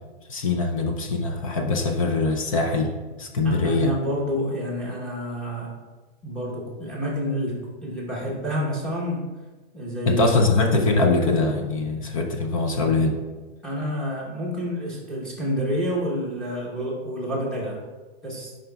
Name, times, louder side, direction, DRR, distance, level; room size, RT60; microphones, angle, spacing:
voice 1, 0.3-2.9 3.2-3.9 10.1-13.2, left 3 dB, 30° left, 4 dB, 0.5 m, -22 dB
voice 2, 3.4-5.7 6.2-7.6 7.8-9.2 9.7-10.2 13.6-17.8 18.2-18.5, equal, ahead, -6 dB, 0.9 m, -28 dB
9.1 x 5.0 x 2.3 m, 1.2 s
hypercardioid pair, 165°, 34 cm